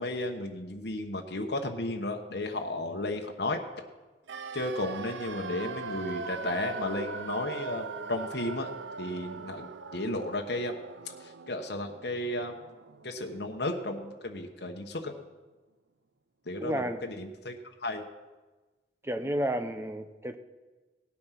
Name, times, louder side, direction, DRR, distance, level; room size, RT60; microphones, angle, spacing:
voice 1, 0.0-3.6 4.5-8.7 9.0-10.8 11.0-12.5 13.0-15.1 16.5-18.1, left 1 dB, 65° left, 3 dB, 1.1 m, -34 dB
sound 1, 4.3-14.2 14.5-14.6, right 4 dB, 90° right, 0.6 m, -41 dB
voice 2, 16.6-17.0 19.0-20.4, right 1 dB, 15° right, 8 dB, 0.7 m, -31 dB
17.5 x 8.6 x 5.9 m, 1.2 s
head